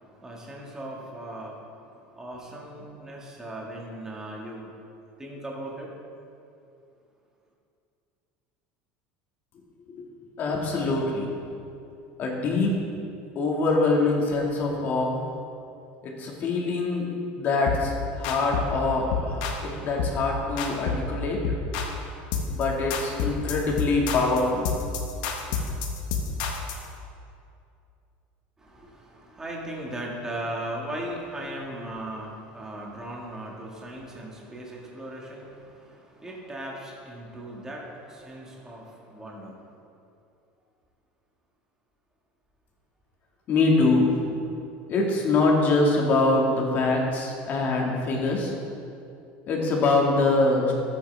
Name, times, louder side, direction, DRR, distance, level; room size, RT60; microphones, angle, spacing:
voice 1, 0.0-4.7 5.2-5.9 28.6-39.6, right 1 dB, 15° right, -2 dB, 1.8 m, -38 dB
voice 2, 10.4-11.3 12.2-12.8 13.4-15.2 16.0-17.1 17.4-21.4 22.5-24.7 43.5-44.1 44.9-48.5 49.5-50.7, left 3 dB, 40° left, -1 dB, 2.0 m, -24 dB
sound 1, 17.7-17.9 18.2-18.8 19.1-19.6 20.0-20.2 20.6-21.1 21.4-22.0 22.3-22.6 22.9-26.8, left 5 dB, 75° left, 1.3 m, -29 dB
13.5 x 8.4 x 3.5 m, 2.6 s
supercardioid pair, 135°, 5 cm